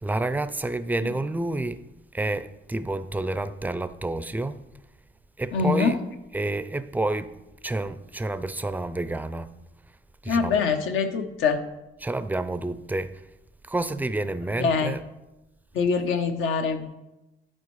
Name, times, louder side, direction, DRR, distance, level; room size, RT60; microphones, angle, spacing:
voice 1, 0.0-1.8 2.1-4.6 5.4-6.0 6.3-7.4 7.6-9.5 10.2-10.6 12.0-13.2 13.6-15.0, right 2 dB, 10° right, 0.4 m, -29 dB
voice 2, 5.5-6.0 10.3-11.6 14.6-15.0 15.7-16.9, left 5 dB, 80° left, 0.8 m, -24 dB
11.0 x 4.4 x 3.1 m
cardioid pair, 90°, 20 cm